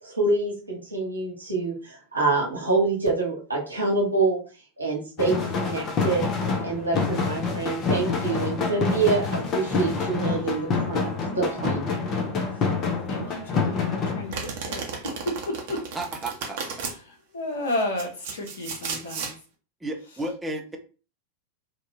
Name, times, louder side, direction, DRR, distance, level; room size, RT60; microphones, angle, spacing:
voice 1, 0.0-4.4 4.8-6.3 6.6-11.9, right 3 dB, 80° right, -2 dB, 1.0 m, -26 dB
sound 1, 5.2-14.3, left 4 dB, 30° left, 0.6 m, -27 dB
voice 2, 13.1-15.9 16.9-19.3, left 1 dB, 65° left, 2 dB, 0.9 m, -32 dB
Domestic sounds home sounds, 14.3-16.9 17.7-19.3, right 5 dB, 50° right, 0.8 m, -34 dB
voice 3, 15.9-16.6 19.8-20.8, right 1 dB, 10° right, 1 dB, 0.6 m, -32 dB
2.7 x 2.3 x 2.8 m, 0.36 s
figure-of-eight pair, 90°, 0 cm